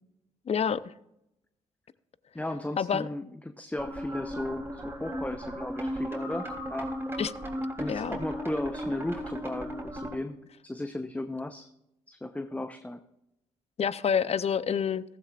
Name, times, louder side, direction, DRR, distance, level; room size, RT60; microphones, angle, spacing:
voice 1, 0.5-0.9 2.8-3.1 7.2-7.3 7.9-8.2 13.8-15.0, left 7 dB, 40° left, 17 dB, 0.6 m, -27 dB
voice 2, 2.3-6.9 7.8-11.7 12.1-13.0, left 1 dB, 10° left, 9 dB, 0.8 m, -35 dB
sound 1, 3.8-10.2, equal, 15° right, 3.3 m, -36 dB
15.0 x 13.5 x 2.5 m, 0.84 s
hypercardioid pair, 55°, 16 cm